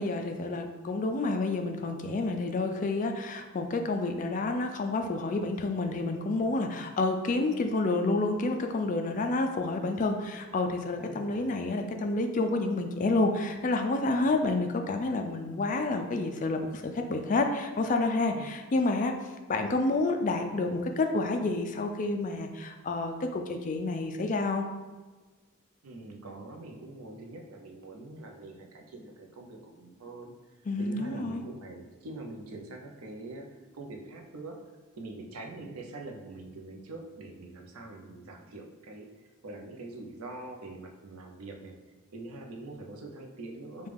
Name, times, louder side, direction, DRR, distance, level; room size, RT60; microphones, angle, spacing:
voice 1, 0.0-19.1 19.5-24.7 30.7-31.4, left 2 dB, 35° left, 5 dB, 0.3 m, -29 dB
voice 2, 11.0-11.5 18.3-18.5 25.8-30.3 30.8-34.6 35.0-39.1 39.4-41.8 42.1-43.9, right 2 dB, 90° right, 2 dB, 0.6 m, -44 dB
5.2 x 2.3 x 3.3 m, 1.3 s
head